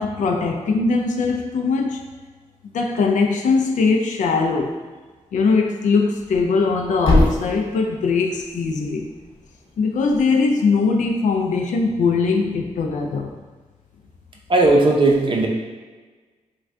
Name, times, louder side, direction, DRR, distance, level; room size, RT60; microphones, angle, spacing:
voice 1, 0.0-2.0 2.7-4.8 5.3-9.1 9.8-13.3, left 4 dB, 75° left, 3 dB, 0.4 m, -20 dB
Thump thud, 6.1-10.2, left 1 dB, 45° left, 0.8 m, -26 dB
voice 2, 14.5-15.5, right 2 dB, 40° right, 0 dB, 0.5 m, -16 dB
2.5 x 2.2 x 3.3 m, 1.4 s
cardioid pair, 65°, 13 cm